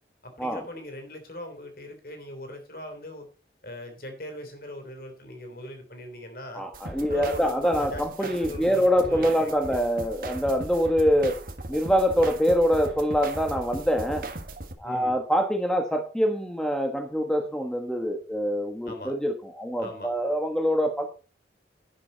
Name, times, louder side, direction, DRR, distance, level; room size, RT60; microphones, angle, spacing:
voice 1, 0.2-3.3 3.6-6.6 7.0-9.8 14.8-15.2 18.9-19.1 19.8-20.1, left 1 dB, 55° left, 6 dB, 3.3 m, -40 dB
voice 2, 6.5-11.4 11.7-14.3 14.8-21.1, equal, 5° left, 4 dB, 1.3 m, -25 dB
sound 1, 6.7-14.7, right 2 dB, 50° right, 1.6 m, -38 dB
11.0 x 10.0 x 4.0 m, 0.35 s
head